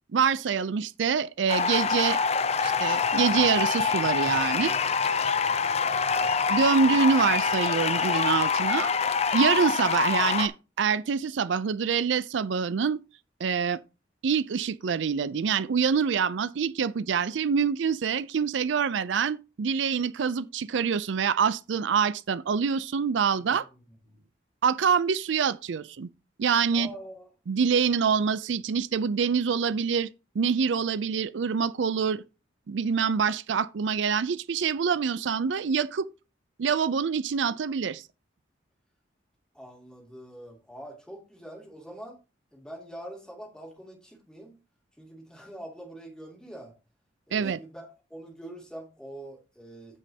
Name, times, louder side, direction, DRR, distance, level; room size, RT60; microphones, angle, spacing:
voice 1, 0.1-2.2 2.6-4.7 6.5-8.9 9.3-13.0 13.4-13.8 14.2-23.7 24.6-26.1 26.4-26.9 27.5-30.1 30.4-32.2 32.7-36.1 36.6-38.0 47.3-47.6, right 6 dB, 85° right, 0.4 m, -25 dB
sound 1, 1.5-10.5, left 5 dB, 35° left, 0.5 m, -25 dB
voice 2, 5.3-5.7 26.7-27.3 39.5-42.2 42.5-44.6 45.0-46.7 47.3-50.0, right 1 dB, 5° left, 2.5 m, -44 dB
15.0 x 5.3 x 2.8 m
head